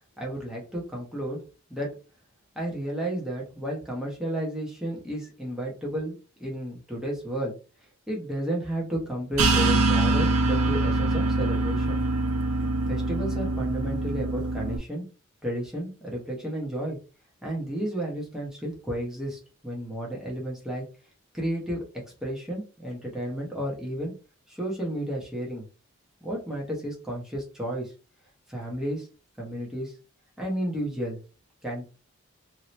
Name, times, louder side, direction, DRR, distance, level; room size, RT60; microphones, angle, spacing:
voice 1, 0.2-1.4 1.7-1.9 2.5-6.1 6.4-7.5 8.1-12.0 12.9-15.0 15.4-17.0 17.4-20.8 21.3-21.8 22.2-24.1 24.5-25.6 26.2-27.9 28.5-29.1 29.4-29.9 30.4-31.2 31.6-31.9, right 1 dB, 5° right, -3 dB, 1.0 m, -32 dB
sound 1, 9.4-14.8, right 2 dB, 90° right, 0.5 m, -24 dB
2.8 x 2.8 x 3.1 m, 0.34 s
head